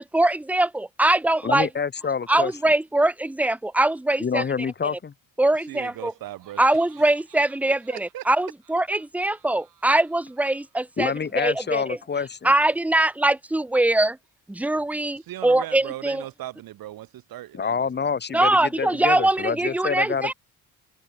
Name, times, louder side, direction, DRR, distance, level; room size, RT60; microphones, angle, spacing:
voice 1, 0.0-1.7 2.3-4.4 5.4-6.1 6.6-12.0 12.4-14.2 14.5-16.2 18.3-20.3, right 1 dB, 5° right, 0.7 m, -22 dB
voice 2, 1.4-2.5 4.2-5.1 11.0-12.5 17.5-20.3, left 6 dB, 30° left, 1.1 m, -27 dB
voice 3, 5.7-6.6 7.0-7.1 7.7-8.3 15.1-18.1, right 14 dB, 85° right, 4.9 m, -38 dB
Laughter, 5.9-11.0, right 10 dB, 65° right, 6.4 m, -57 dB
cardioid pair, 105°, 34 cm